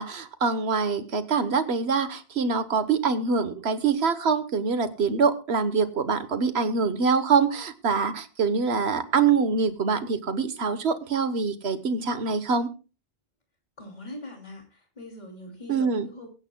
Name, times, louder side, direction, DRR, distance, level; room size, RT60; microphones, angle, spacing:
voice 1, 0.0-12.7 15.7-16.1, right 5 dB, 65° right, 11 dB, 1.3 m, -24 dB
voice 2, 13.8-16.3, left 1 dB, 40° left, 1 dB, 2.9 m, -42 dB
23.5 x 8.9 x 2.2 m, 0.33 s
omnidirectional pair, 1.2 m